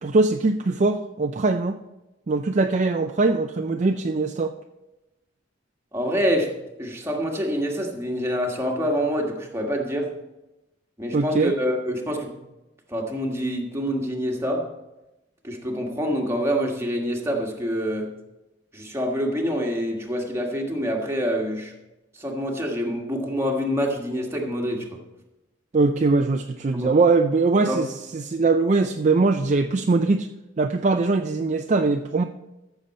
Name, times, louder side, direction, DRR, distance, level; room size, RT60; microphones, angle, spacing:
voice 1, 0.0-1.8 2.3-4.5 11.1-11.5 25.7-30.3 30.6-32.2, right 3 dB, 40° right, 5 dB, 0.4 m, -21 dB
voice 2, 5.9-6.5 6.8-10.1 11.0-12.4 12.9-14.7 15.4-18.1 18.7-21.7 22.2-25.0 26.7-26.9 27.6-27.8, equal, 15° right, 0 dB, 1.6 m, -26 dB
14.0 x 6.9 x 4.2 m, 0.99 s
head